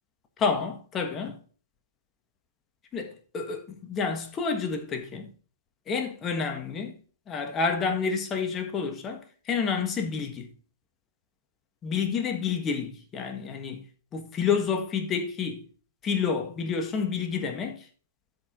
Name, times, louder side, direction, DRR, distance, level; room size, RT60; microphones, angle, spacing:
voice 1, 0.4-1.4 2.9-5.3 5.9-6.9 7.3-9.2 9.5-10.5 11.8-13.8 14.1-15.6 16.0-17.8, left 5 dB, 20° left, 1.6 m, -29 dB
13.0 x 5.0 x 3.8 m
figure-of-eight pair, 115°, 0 cm